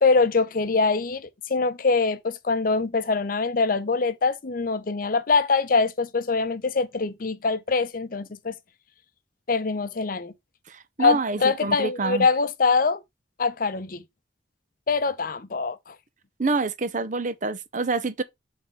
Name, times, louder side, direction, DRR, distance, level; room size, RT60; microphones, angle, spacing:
voice 1, 0.0-8.5 9.5-10.3 11.0-13.0 13.4-14.0 14.9-15.9, left 4 dB, 50° left, 0.6 m, -23 dB
voice 2, 10.7-12.3 16.4-18.2, right 3 dB, 45° right, 0.6 m, -27 dB
5.4 x 3.6 x 5.4 m
head